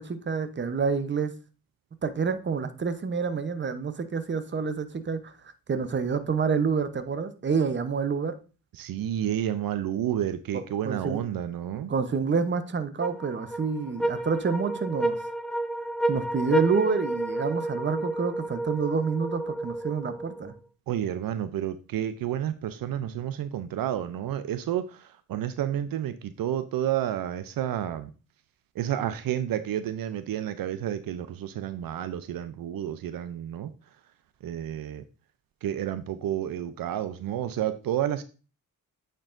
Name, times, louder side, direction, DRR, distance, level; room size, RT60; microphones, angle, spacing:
voice 1, 0.0-1.3 2.0-5.3 5.7-8.3 10.5-11.2 11.9-15.2 16.1-20.5, right 5 dB, 35° right, 0.8 m, -28 dB
voice 2, 8.8-11.9 20.9-24.9 25.3-28.1 28.8-33.7 34.4-35.0 35.6-38.2, right 11 dB, 75° right, 0.5 m, -30 dB
sound 1, 13.0-20.6, right 2 dB, ahead, 0.6 m, -30 dB
8.7 x 4.5 x 2.5 m
cardioid pair, 75°, 34 cm